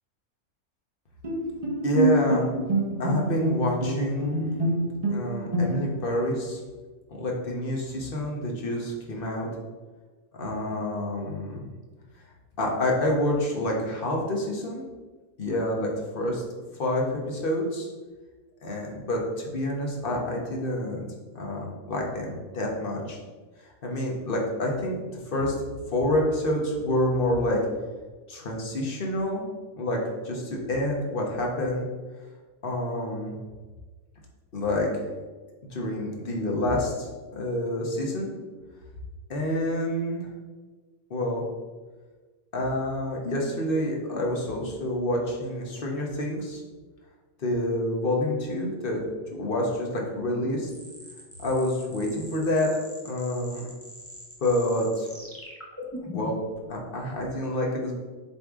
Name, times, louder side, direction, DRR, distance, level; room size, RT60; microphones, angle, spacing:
Bowed string instrument, 1.2-6.1, right 1 dB, 35° right, 0.7 m, -26 dB
voice 1, 1.8-2.5 3.0-4.3 5.1-6.6 7.1-9.5 10.4-11.7 12.6-14.8 15.4-15.9 16.1-16.4 16.8-17.9 18.6-21.1 21.3-23.2 23.8-25.0 25.3-25.5 25.9-27.6 28.3-29.5 29.8-30.0 30.2-31.8 32.6-33.4 34.5-34.9 35.7-38.3 39.3-40.3 41.1-41.4 42.5-46.6 47.4-49.0 49.3-50.7 51.4-52.7 53.0-53.7 54.4-55.1 56.1-56.4 56.7-57.9, left 1 dB, 40° left, -1 dB, 1.2 m, -28 dB
sound 1, 50.7-56.5, left 2 dB, 10° left, 0.8 m, -42 dB
8.1 x 3.3 x 3.6 m, 1.3 s
omnidirectional pair, 1.5 m